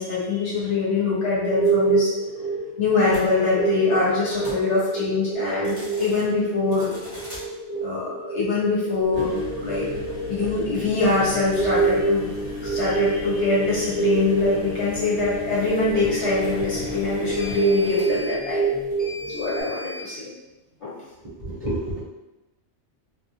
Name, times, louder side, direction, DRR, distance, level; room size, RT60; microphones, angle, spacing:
voice 1, 0.0-2.1 2.8-6.9 7.8-9.9 10.3-12.3 12.6-18.7 19.3-20.2 20.8-20.9, left 4 dB, 85° left, -8 dB, 1.3 m, -24 dB
sound 1, 1.2-19.6, right 4 dB, 45° left, 0.5 m, -27 dB
sound 2, 3.1-3.2 4.2-4.6 5.5-6.2 6.7-7.4 9.0-20.1, left 2 dB, 25° left, 0.9 m, -35 dB
voice 2, 21.2-22.0, right 1 dB, 40° right, -8 dB, 0.6 m, -29 dB
2.3 x 2.2 x 2.7 m, 1.0 s
omnidirectional pair, 1.2 m